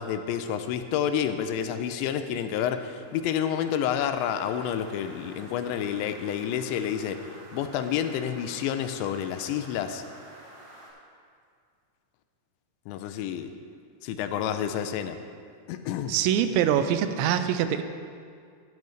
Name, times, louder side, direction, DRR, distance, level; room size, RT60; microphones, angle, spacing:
voice 1, 0.0-7.2 7.5-10.0 12.9-13.5 14.0-15.2 15.7-16.1, left 9 dB, 85° left, 8 dB, 2.9 m, -29 dB
sound 1, 2.5-10.9, right 1 dB, 60° right, 5.0 m, -50 dB
voice 2, 16.1-17.8, right 9 dB, 85° right, 9 dB, 2.8 m, -24 dB
15.0 x 11.5 x 3.2 m, 2.2 s
omnidirectional pair, 5.1 m